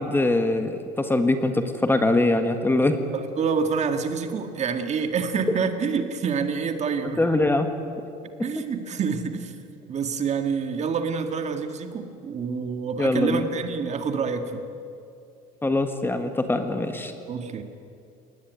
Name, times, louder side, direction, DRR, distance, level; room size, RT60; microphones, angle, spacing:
voice 1, 0.0-3.0 7.2-7.7 13.0-13.5 15.6-17.1, left 2 dB, 10° left, 7 dB, 1.6 m, -23 dB
voice 2, 3.1-7.2 8.4-9.5 9.9-14.7 17.3-17.6, right 5 dB, 35° right, 7 dB, 1.8 m, -27 dB
21.5 x 19.0 x 9.4 m, 2.5 s
cardioid pair, 115°, 19 cm